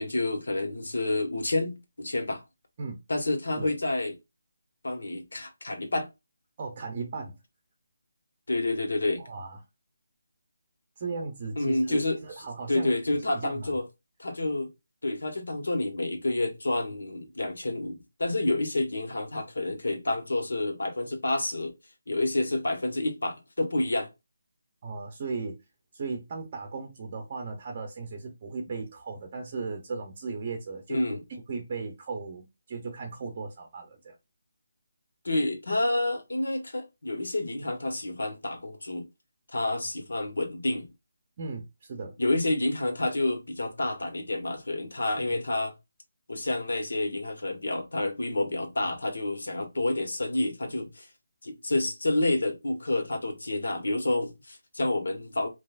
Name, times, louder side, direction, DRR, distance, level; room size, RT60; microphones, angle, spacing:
voice 1, 0.0-2.4 3.1-4.1 4.8-6.1 8.5-9.2 11.6-12.2 12.7-13.9 14.2-14.7 15.0-21.7 22.1-24.1 30.9-31.2 35.2-39.1 39.5-40.9 42.2-45.7 46.3-51.1 51.4-55.5, left 2 dB, 80° left, 1.6 m, -29 dB
voice 2, 6.6-7.4 9.2-9.6 11.0-12.9 13.3-13.7 24.8-25.6 25.9-31.0 31.3-34.1 41.4-42.2 45.3-45.4, right 4 dB, 25° right, 0.7 m, -36 dB
5.3 x 2.7 x 2.5 m
hypercardioid pair, 175°, 0 cm